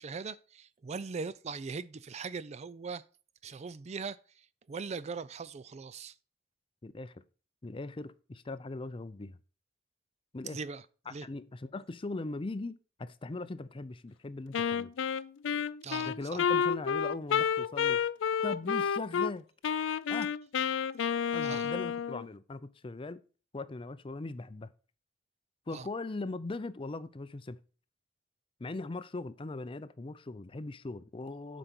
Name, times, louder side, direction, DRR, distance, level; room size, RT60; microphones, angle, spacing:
voice 1, 0.0-3.0 3.4-6.1 10.5-10.8 11.1-11.3 15.8-16.1 21.4-21.7 25.7-25.9, right 5 dB, 35° right, 0.4 m, -40 dB
voice 2, 6.8-7.2 7.6-9.4 10.3-10.6 11.1-14.9 16.1-18.0 18.4-19.5 20.1-20.3 21.3-23.2 23.5-24.7 25.7-27.6 28.6-31.6, left 2 dB, 30° left, 0.5 m, -40 dB
Wind instrument woodwind instrument, 14.5-19.3 19.6-22.3, left 7 dB, 85° left, 0.4 m, -30 dB
8.0 x 5.1 x 5.9 m
head